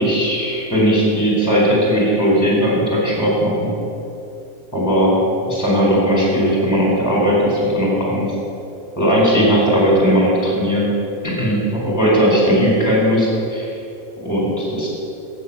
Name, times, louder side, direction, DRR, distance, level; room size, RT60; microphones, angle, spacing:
voice 1, 0.0-3.7 4.7-8.2 9.0-10.9 11.2-13.7 14.2-14.9, equal, 10° left, -4 dB, 4.3 m, -17 dB
17.5 x 8.0 x 8.5 m, 2.8 s
omnidirectional pair, 1.7 m